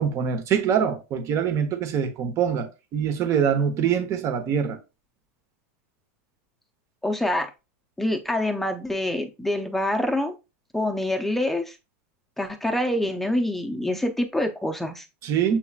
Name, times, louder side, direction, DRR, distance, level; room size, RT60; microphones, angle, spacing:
voice 1, 0.0-4.8 15.2-15.6, right 7 dB, 40° right, 1.0 m, -24 dB
voice 2, 7.0-7.5 8.0-10.4 10.7-11.7 12.4-15.0, left 1 dB, 5° left, 0.6 m, -26 dB
7.2 x 2.9 x 2.4 m
hypercardioid pair, 120°, 8 cm